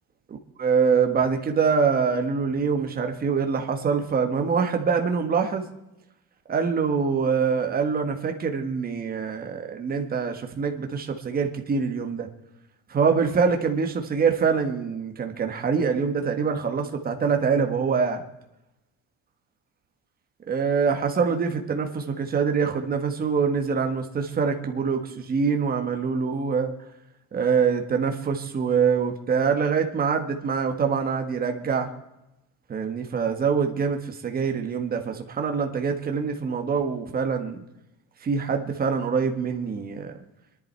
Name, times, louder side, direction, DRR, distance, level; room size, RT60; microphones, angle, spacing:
voice 1, 0.6-5.6 6.5-12.3 12.9-18.2 20.5-26.7 27.3-31.9 32.7-37.6 38.2-40.1, right 6 dB, 25° right, 5 dB, 1.4 m, -24 dB
25.5 x 11.0 x 4.5 m, 0.92 s
cardioid pair, 175°, 36 cm